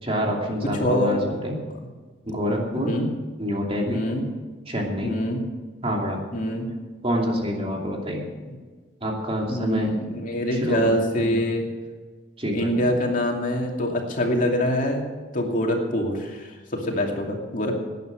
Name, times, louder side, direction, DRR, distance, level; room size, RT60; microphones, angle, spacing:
voice 1, 0.0-1.6 2.2-2.9 3.4-4.0 4.7-5.1 5.8-6.2 7.0-8.3 9.0-9.9 10.5-10.9 11.2-11.4 12.4-12.9, equal, 35° right, -1 dB, 2.8 m, -26 dB
voice 2, 0.8-1.3 2.8-3.1 3.8-4.2 5.0-5.4 6.3-6.7 8.5-8.6 9.5-11.6 12.5-15.0 15.3-17.8, left 1 dB, 50° left, 0 dB, 2.6 m, -25 dB
18.5 x 9.5 x 6.3 m, 1.4 s
head